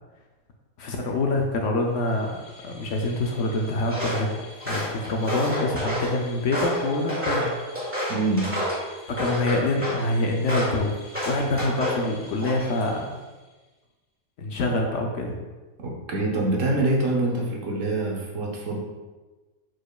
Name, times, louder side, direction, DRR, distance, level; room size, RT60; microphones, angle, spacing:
voice 1, 0.8-7.5 9.1-11.0 11.2-13.2 14.4-15.3, left 2 dB, 65° left, 1 dB, 0.8 m, -26 dB
sound 1, 1.9-13.7, left 2 dB, 85° left, 1.4 m, -49 dB
Walk footsteps, 3.9-4.2 4.6-6.1 6.5-8.8 9.2-10.0 10.5-10.8 11.1-12.0 12.4-12.8, equal, 10° right, 1.4 m, -29 dB
voice 2, 8.1-8.5 15.8-18.8, right 2 dB, 65° right, -2 dB, 1.2 m, -25 dB
4.8 x 4.5 x 2.3 m, 1.2 s
omnidirectional pair, 1.5 m